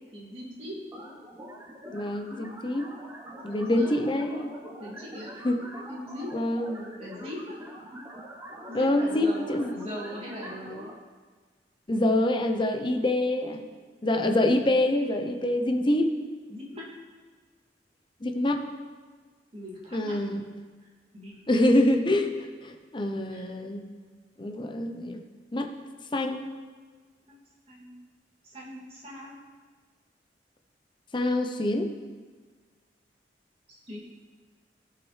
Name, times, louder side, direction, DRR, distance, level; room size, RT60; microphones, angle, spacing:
voice 1, 0.1-0.7 3.5-3.9 4.8-5.3 5.9-6.3 7.0-7.6 8.7-10.9 14.1-14.5 15.3-16.0 16.5-16.8 19.5-20.4 20.8-20.9 21.1-21.4 23.3-23.5 27.7-27.9 28.4-29.4 33.7-34.0, equal, 35° right, -5 dB, 2.5 m, -41 dB
sound 1, 0.9-10.9, equal, 15° right, 1.1 m, -44 dB
voice 2, 1.9-2.9 3.4-4.5 5.4-5.6 6.3-6.9 8.7-9.7 11.9-13.6 14.0-16.0 18.2-18.6 19.9-20.4 21.5-22.3 22.6-23.8 24.4-25.2 25.5-25.7 26.1-26.5 31.1-31.9, left 1 dB, 25° left, 5 dB, 0.7 m, -25 dB
16.5 x 5.8 x 3.3 m, 1.5 s
head